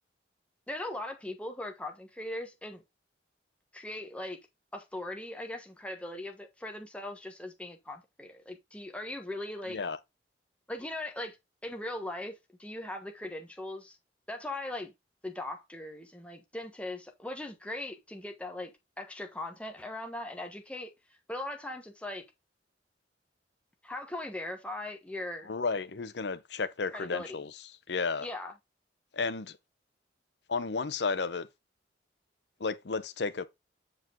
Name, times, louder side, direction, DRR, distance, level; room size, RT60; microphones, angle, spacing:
voice 1, 0.7-2.8 3.7-4.4 4.7-9.8 10.7-11.4 11.6-14.0 14.3-14.9 15.2-20.9 21.3-22.2 23.8-25.5 26.9-27.4 28.2-28.5, left 1 dB, 5° left, 1.2 m, -39 dB
voice 2, 25.5-28.3 29.1-29.6 30.5-31.5 32.6-33.5, left 4 dB, 70° left, 0.7 m, -33 dB
7.7 x 4.9 x 3.6 m
head